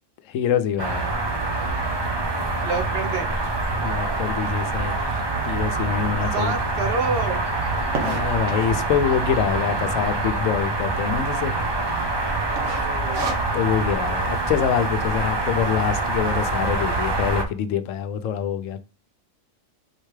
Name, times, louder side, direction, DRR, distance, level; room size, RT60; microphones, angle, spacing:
voice 1, 0.3-1.1 3.8-5.0 5.5-6.5 8.0-11.6 13.5-18.8, left 8 dB, 80° left, 0.9 m, -25 dB
sound 1, 0.8-17.4, right 2 dB, 30° right, 0.5 m, -25 dB
voice 2, 2.6-3.3 6.3-7.4 12.4-13.3, right 4 dB, 55° right, 0.9 m, -28 dB
sound 2, 5.4-5.5 6.1-6.2 6.4-6.5 6.8-8.9 9.5-10.0 10.3-10.4 10.6-10.7 11.2-11.6 11.9-12.2 12.6-13.8, right 3 dB, 85° right, 1.4 m, -31 dB
4.5 x 3.2 x 3.2 m
omnidirectional pair, 1.3 m